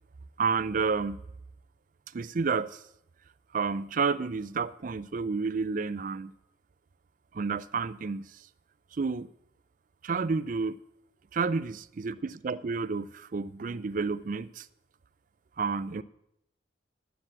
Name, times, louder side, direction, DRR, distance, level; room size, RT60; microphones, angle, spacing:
voice 1, 0.4-1.2 2.1-2.8 3.5-6.3 7.3-8.5 8.9-9.3 10.0-10.8 11.3-14.7 15.6-16.0, right 4 dB, 45° right, 0.4 m, -30 dB
10.0 x 10.0 x 7.6 m
head